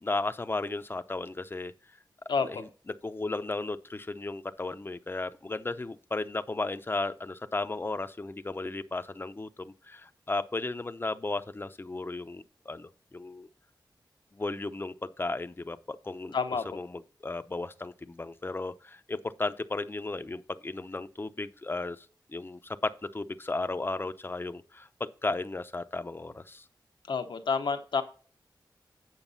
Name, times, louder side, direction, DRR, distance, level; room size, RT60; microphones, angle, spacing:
voice 1, 0.0-1.7 2.4-13.5 14.3-16.4 16.7-22.1 22.3-26.6, left 2 dB, 30° left, 0.7 m, -35 dB
voice 2, 16.3-16.7 27.1-28.0, left 5 dB, 80° left, 1.1 m, -28 dB
9.1 x 6.6 x 4.1 m
wide cardioid pair, 70°, 8 cm